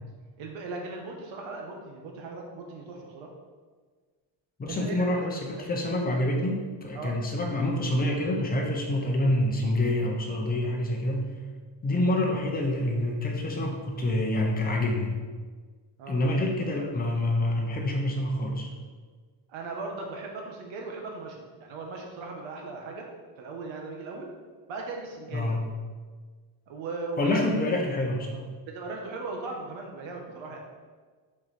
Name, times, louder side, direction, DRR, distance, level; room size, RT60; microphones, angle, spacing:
voice 1, 0.4-3.3 4.7-5.1 6.9-7.2 16.0-16.2 19.5-23.1 23.4-24.3 24.7-25.6 26.7-27.6 28.7-30.6, right 3 dB, 85° right, 1 dB, 1.2 m, -38 dB
voice 2, 4.6-11.3 11.8-15.1 16.1-18.7 25.3-25.6 27.2-28.5, left 1 dB, 20° left, 0 dB, 0.8 m, -27 dB
5.9 x 4.7 x 4.3 m, 1.5 s
cardioid pair, 175°, 45 cm